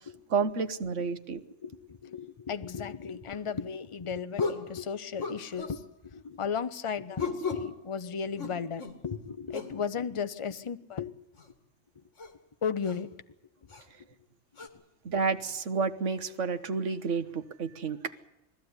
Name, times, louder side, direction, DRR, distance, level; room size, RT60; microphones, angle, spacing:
voice 1, 0.3-1.4 15.0-18.1, right 5 dB, 75° right, 1.5 m, -30 dB
voice 2, 1.6-11.2 11.9-12.0 12.6-13.1 13.6-14.1, left 6 dB, 30° left, 0.8 m, -35 dB
sound 1, 3.3-3.4 4.4-4.7 5.2-5.8 7.2-7.7 8.4-9.0 9.5-9.8 11.4-11.5 12.2-12.3 12.8-13.0 13.7-13.8 14.6-14.7, left 4 dB, 75° left, 2.5 m, -35 dB
20.5 x 15.0 x 9.6 m
omnidirectional pair, 1.3 m